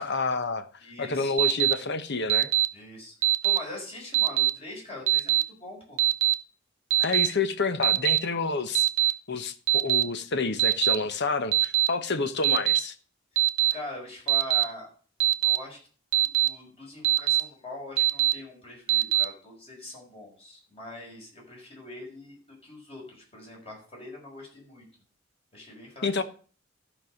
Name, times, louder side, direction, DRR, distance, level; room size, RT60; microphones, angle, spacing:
voice 1, 0.0-0.7 1.0-2.5 7.0-8.9 9.3-12.9 26.0-26.2, left 4 dB, 60° left, 1.1 m, -29 dB
voice 2, 0.8-1.4 2.7-3.1 3.4-6.0 13.7-14.9 15.4-15.8 16.2-24.9 25.5-26.2, left 2 dB, 30° left, 5.8 m, -42 dB
Alarm, 1.4-1.7 2.3-2.7 3.2-3.6 4.1-4.5 5.1-5.4 6.0-6.3 6.9-7.3 7.8-8.2 8.7-9.1 9.7-10.0 10.6-10.9 11.5-11.9 12.4-12.8 13.4-13.7 14.3-14.6 15.2-15.6 16.1-16.5 17.0-17.4 18.0-18.3 18.9-19.2, right 15 dB, 75° right, 0.7 m, -22 dB
13.5 x 5.5 x 6.5 m
head